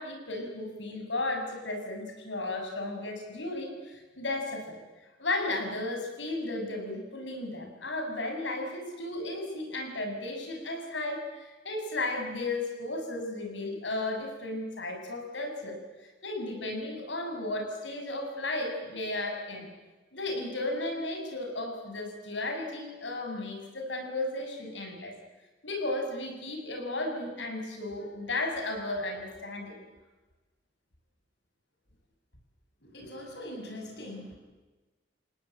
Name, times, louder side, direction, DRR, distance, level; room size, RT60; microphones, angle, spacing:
voice 1, 0.0-4.8 5.2-19.7 20.1-25.1 25.6-29.8, left 2 dB, 85° left, 3 dB, 6.7 m, -34 dB
voice 2, 32.8-34.4, left 1 dB, 65° left, 2 dB, 7.6 m, -42 dB
29.0 x 18.0 x 9.1 m, 1.2 s
head